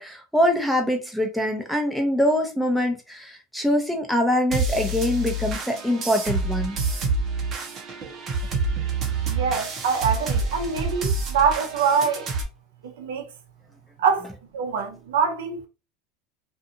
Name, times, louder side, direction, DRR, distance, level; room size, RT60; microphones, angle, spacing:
voice 1, 0.0-6.8, left 1 dB, ahead, 0.8 m, -24 dB
sound 1, 4.5-12.4, right 3 dB, 40° right, 0.8 m, -27 dB
voice 2, 9.3-12.3 12.8-13.3 14.0-15.7, right 6 dB, 85° right, 0.6 m, -24 dB
2.5 x 2.4 x 2.7 m
supercardioid pair, 110°, 0 cm